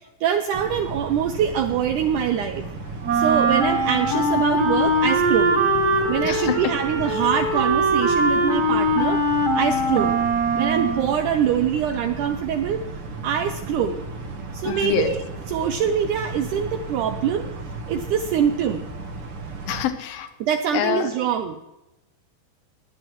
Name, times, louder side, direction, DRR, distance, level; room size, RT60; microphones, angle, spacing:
voice 1, 0.2-2.7 3.1-5.6 6.1-9.2 9.6-10.2 10.6-12.8 13.2-14.0 14.5-17.5 17.9-18.9 20.4-21.6, right 8 dB, 80° right, 7 dB, 1.8 m, -24 dB
sound 1, 0.5-19.8, right 3 dB, 55° right, 1.5 m, -35 dB
Wind instrument woodwind instrument, 3.0-11.1, right 1 dB, 35° right, 2.1 m, -21 dB
voice 2, 6.2-6.6 14.6-15.1 19.7-20.3 20.7-21.0, left 10 dB, 80° left, 8 dB, 2.6 m, -25 dB
20.0 x 9.6 x 3.0 m, 0.96 s
omnidirectional pair, 4.2 m